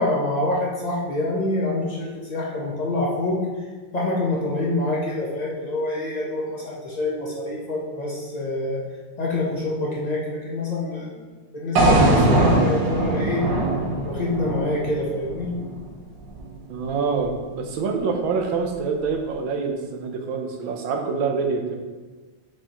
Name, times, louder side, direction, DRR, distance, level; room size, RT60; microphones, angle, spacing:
voice 1, 0.0-3.5 3.9-8.8 9.2-11.1 11.5-13.4 14.0-15.5, left 2 dB, 60° left, -4 dB, 0.4 m, -26 dB
sound 1, 11.8-15.9, right 2 dB, 60° right, 1.4 m, -21 dB
voice 2, 16.7-21.8, right 5 dB, 80° right, 3 dB, 1.5 m, -26 dB
7.2 x 5.0 x 2.9 m, 1.3 s
omnidirectional pair, 2.1 m